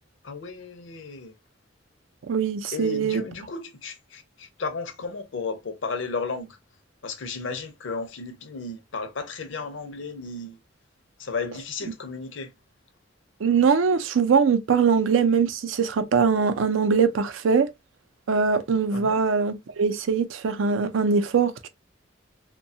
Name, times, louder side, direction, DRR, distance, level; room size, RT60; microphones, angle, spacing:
voice 1, 0.2-1.3 2.7-6.6 7.0-10.6 11.2-12.5 18.9-19.2, left 4 dB, 70° left, 0.6 m, -34 dB
voice 2, 2.3-3.2 13.4-17.7 18.3-21.7, right 5 dB, 85° right, 0.5 m, -22 dB
2.7 x 2.2 x 2.6 m
head